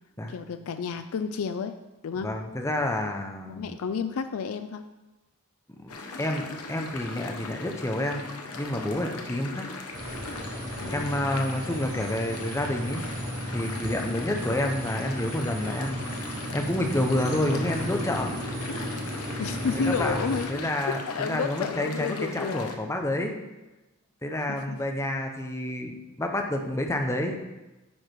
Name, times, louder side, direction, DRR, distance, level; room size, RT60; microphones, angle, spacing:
voice 1, 0.3-1.7 2.0-2.3 3.4-4.8 7.5-7.7 9.3-9.4 10.8-11.2 19.4-20.7 21.1-22.7 24.7-24.8, left 5 dB, 70° left, 9 dB, 0.4 m, -31 dB
voice 2, 2.2-3.8 5.8-8.3 8.5-9.6 10.9-13.0 13.5-16.0 16.5-18.3 19.7-20.2 20.5-23.4 24.2-27.4, left 1 dB, 15° left, 3 dB, 0.7 m, -29 dB
sound 1, 5.9-22.8, left 3 dB, 90° left, 1.0 m, -39 dB
sound 2, 9.9-20.4, equal, 65° right, 3.0 m, -34 dB
9.6 x 4.8 x 4.5 m, 1.0 s
head